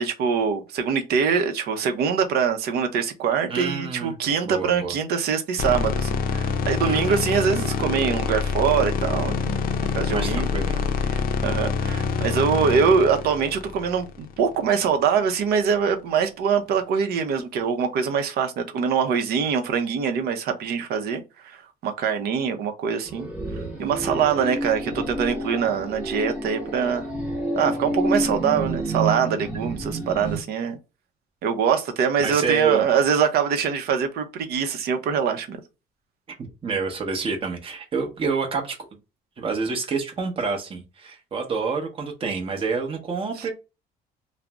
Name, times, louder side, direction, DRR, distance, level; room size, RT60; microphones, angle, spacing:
voice 1, 0.0-9.6 9.9-10.5 11.1-23.3 23.8-27.1 27.6-30.8 31.4-35.6 43.4-43.5, right 6 dB, 70° right, 0.6 m, -23 dB
voice 2, 3.5-4.1 4.4-5.0 6.8-7.3 10.1-10.9 29.8-29.9 32.2-32.8 36.4-38.8 39.4-43.5, right 4 dB, 35° right, 0.8 m, -28 dB
sound 1, 5.6-14.8, left 5 dB, 60° left, 0.5 m, -26 dB
sound 2, 23.1-30.4, right 1 dB, 5° right, 1.0 m, -29 dB
2.5 x 2.0 x 3.3 m
cardioid pair, 110°, 17 cm